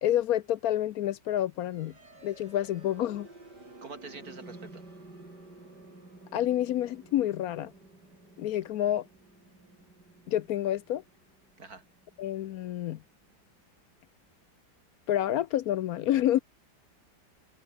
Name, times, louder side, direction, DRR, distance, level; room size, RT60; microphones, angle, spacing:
voice 1, 0.0-1.9 2.2-3.3 6.3-7.7 8.4-9.1 10.3-11.0 12.2-13.0 15.1-16.4, left 12 dB, 70° left, 1.0 m, -28 dB
sound 1, 1.6-13.5, right 2 dB, 85° right, 7.9 m, -52 dB
voice 2, 3.8-4.8 11.6-11.8, right 4 dB, 60° right, 3.4 m, -45 dB
omnidirectional pair, 1.8 m